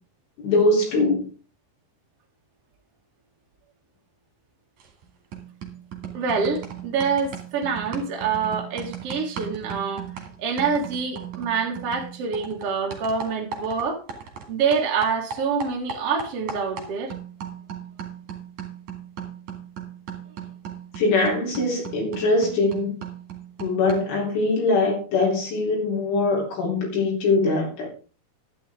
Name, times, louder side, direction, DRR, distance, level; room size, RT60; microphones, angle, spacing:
voice 1, 0.4-1.3 21.0-22.9 23.6-27.9, left 2 dB, 75° left, 6.2 m, -22 dB
sound 1, 4.8-5.0 5.3-14.5 14.7-24.2, right 7 dB, 45° right, 3.4 m, -37 dB
voice 2, 6.1-10.0 10.4-14.0 14.5-17.1, right 5 dB, 60° right, 1.5 m, -26 dB
12.5 x 11.0 x 3.6 m
omnidirectional pair, 5.6 m